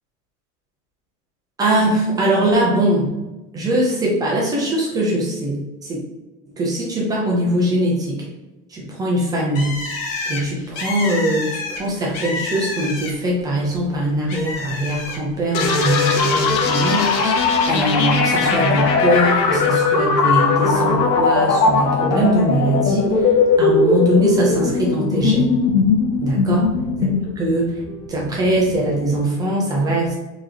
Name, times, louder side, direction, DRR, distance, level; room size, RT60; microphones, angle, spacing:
voice 1, 1.6-3.1 3.5-6.0 6.6-8.2 8.7-9.8 10.3-23.1 23.6-25.6 26.2-26.6 27.0-27.1 27.4-27.7 28.1-30.1, right 1 dB, 10° right, -3 dB, 0.5 m, -21 dB
Bird, 9.5-13.4 13.7-16.4 16.8-17.5, left 3 dB, 30° left, 0.8 m, -29 dB
sound 1, 15.5-29.2, left 4 dB, 90° left, 0.9 m, -19 dB
4.6 x 3.1 x 2.9 m, 1.1 s
supercardioid pair, 145°, 49 cm